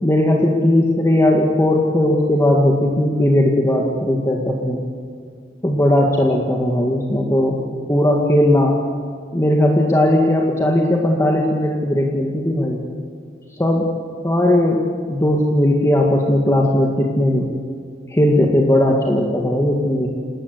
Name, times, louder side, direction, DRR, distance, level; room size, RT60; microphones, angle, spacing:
voice 1, 0.0-4.8 5.6-7.6 7.9-8.8 9.3-12.8 13.6-13.9 14.2-17.5 18.1-20.1, left 1 dB, 15° left, 0 dB, 2.0 m, -17 dB
28.5 x 19.0 x 8.2 m, 2.2 s
head